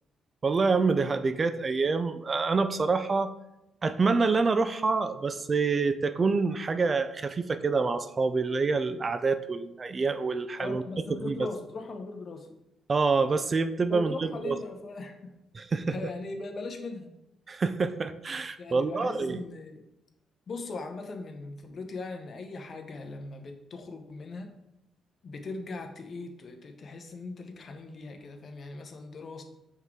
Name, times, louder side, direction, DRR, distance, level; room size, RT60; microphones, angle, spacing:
voice 1, 0.4-3.3 3.8-10.8 11.3-11.4 12.9-14.6 15.6-15.9 17.5-19.4, right 4 dB, 35° right, 11 dB, 0.4 m, -27 dB
voice 2, 10.6-12.5 13.9-15.4 15.8-17.1 18.6-19.8 20.5-24.5 25.2-29.4, left 3 dB, 45° left, 5 dB, 0.9 m, -39 dB
5.6 x 3.7 x 4.6 m, 0.90 s
cardioid pair, 90°, 0 cm